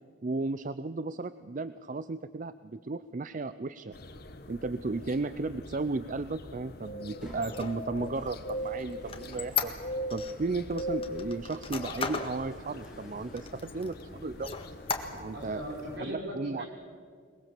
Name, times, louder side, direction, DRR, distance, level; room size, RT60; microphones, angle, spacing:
voice 1, 0.2-3.9 4.5-9.7 10.1-14.6 15.1-15.6 16.1-16.6, right 3 dB, 45° right, 14 dB, 0.5 m, -34 dB
sound 1, 3.9-16.0, equal, 55° left, 1.2 m, -41 dB
sound 2, 4.0-4.5 5.2-5.3 7.0-15.9, equal, 5° right, 5.2 m, -56 dB
Squeak, 7.3-10.3 10.8-12.4 12.8-12.9 13.3-14.0 14.4-15.4, left 6 dB, 30° left, 1.6 m, -35 dB
voice 2, 15.3-16.7, equal, 65° right, -1 dB, 5.9 m, -39 dB
22.0 x 21.0 x 7.5 m, 2.1 s
head